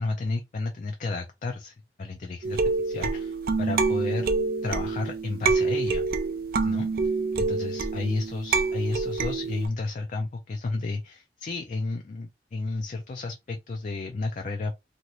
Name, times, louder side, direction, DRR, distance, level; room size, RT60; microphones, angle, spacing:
voice 1, 0.0-4.3 4.6-6.0 6.6-7.1 7.4-14.7, left 3 dB, 45° left, 0.3 m, -32 dB
sound 1, 2.4-9.7, right 4 dB, 55° right, 0.4 m, -27 dB
2.7 x 2.4 x 3.0 m
head